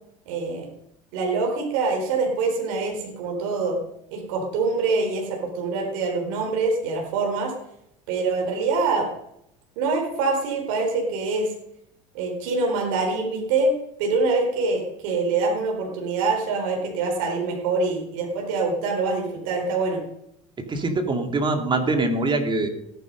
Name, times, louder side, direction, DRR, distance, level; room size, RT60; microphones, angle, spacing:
voice 1, 0.3-0.7 1.1-3.8 4.1-7.5 8.1-9.1 9.8-11.5 12.1-20.0, right 3 dB, 70° right, 1 dB, 4.4 m, -25 dB
voice 2, 20.7-22.7, right 2 dB, 25° right, 5 dB, 3.1 m, -23 dB
17.0 x 10.5 x 5.5 m, 0.77 s
hypercardioid pair, 85°, 17 cm